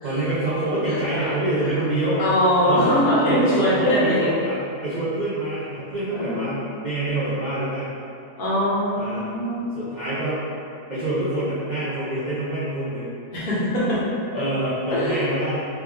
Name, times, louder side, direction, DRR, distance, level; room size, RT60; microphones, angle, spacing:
voice 1, 0.0-2.3 2.6-3.0 3.2-7.9 9.0-9.2 9.7-10.5 10.9-13.1 14.3-15.6, right 1 dB, 75° right, -10 dB, 0.4 m, -26 dB
voice 2, 0.8-1.3 2.2-4.3 6.1-6.6 8.4-9.7 13.3-14.4 14.9-15.2, equal, 40° left, -9 dB, 1.0 m, -22 dB
4.2 x 2.2 x 3.5 m, 2.5 s
omnidirectional pair, 1.7 m